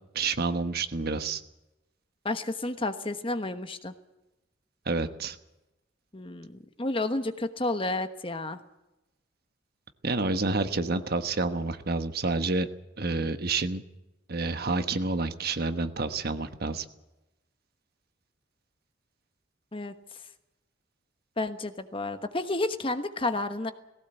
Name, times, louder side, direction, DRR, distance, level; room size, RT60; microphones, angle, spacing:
voice 1, 0.1-1.4 4.9-5.4 10.0-12.7 13.0-13.8 14.3-16.8, right 3 dB, 50° right, 9 dB, 1.2 m, -29 dB
voice 2, 2.2-3.9 6.1-8.6 19.7-19.9 21.4-23.7, left 2 dB, 25° left, 9 dB, 1.2 m, -31 dB
19.0 x 17.0 x 8.1 m, 0.96 s
head